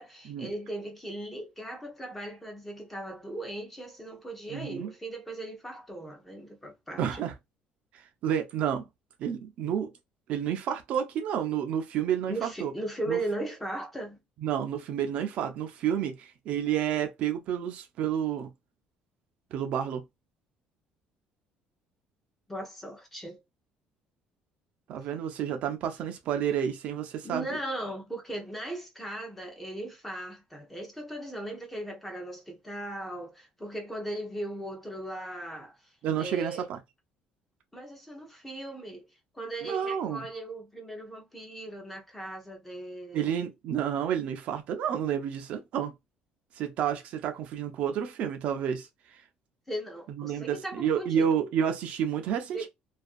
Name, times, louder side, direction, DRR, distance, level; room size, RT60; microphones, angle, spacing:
voice 1, 0.0-7.2 12.3-14.2 22.5-23.4 27.2-36.7 37.7-39.1 39.3-43.3 49.7-51.3 52.5-52.7, right 1 dB, 5° left, 0.6 m, -38 dB
voice 2, 4.5-4.9 7.0-7.3 7.9-8.9 9.2-9.9 10.3-12.7 13.1-13.2 14.4-18.5 19.5-20.0 24.9-27.4 36.0-36.8 39.6-40.3 43.1-45.9 46.5-49.2 50.1-52.7, right 9 dB, 50° right, 0.4 m, -30 dB
2.4 x 2.3 x 2.4 m
cardioid pair, 180°, 3 cm